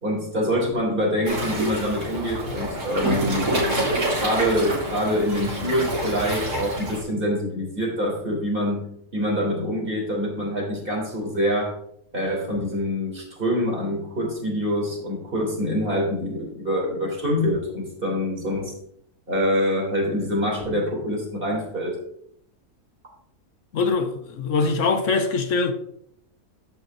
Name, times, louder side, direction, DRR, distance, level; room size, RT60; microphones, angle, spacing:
voice 1, 0.0-3.6 4.1-11.7 12.1-18.7 19.3-22.0, equal, 35° right, 3.3 m, -25 dB
Waves surf, 1.2-7.0, right 1 dB, 90° right, 3.5 m, -27 dB
voice 2, 23.7-25.7, left 4 dB, 55° left, 1.2 m, -23 dB
14.5 x 5.7 x 2.6 m
omnidirectional pair, 1.7 m